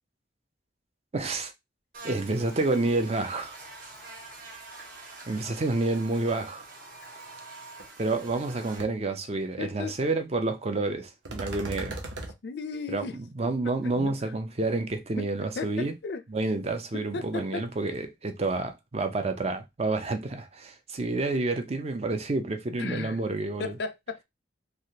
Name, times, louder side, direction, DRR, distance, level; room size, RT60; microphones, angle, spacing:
voice 1, 1.1-1.5 2.0-3.6 5.3-6.6 8.0-12.0 12.9-13.0 13.4-15.9 16.3-23.8, right 2 dB, 35° right, 0.5 m, -29 dB
Buzz, 1.9-8.8, right 3 dB, 50° right, 1.1 m, -46 dB
sound 1, 7.8-7.9 8.2-8.5 8.8-8.9 11.3-12.3, right 2 dB, 90° right, 0.7 m, -37 dB
voice 2, 9.6-10.0 12.4-13.2 13.8-14.1 15.2-15.3 15.6-16.2 16.9-17.7 22.8-23.2 23.6-24.2, left 4 dB, 60° left, 0.4 m, -35 dB
3.2 x 2.4 x 2.7 m
head